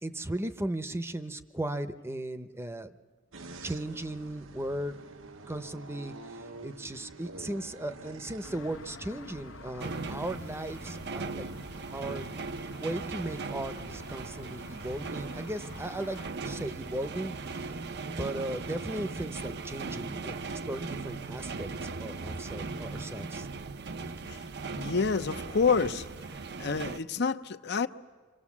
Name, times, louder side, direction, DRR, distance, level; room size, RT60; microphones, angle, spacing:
voice 1, 0.0-3.0 3.6-5.0 5.5-11.5 11.9-12.3 12.8-17.7 18.2-20.4 20.6-21.7 22.0-23.5, right 1 dB, 15° right, 0.8 m, -37 dB
sound 1, 3.3-10.5, right 3 dB, 90° right, 1.0 m, -48 dB
sound 2, 8.4-16.3, left 3 dB, 80° left, 1.0 m, -49 dB
sound 3, 9.8-27.0, right 3 dB, 60° right, 0.7 m, -38 dB
voice 2, 24.8-26.1 26.6-27.9, left 5 dB, 60° left, 0.7 m, -28 dB
28.5 x 25.0 x 7.3 m
head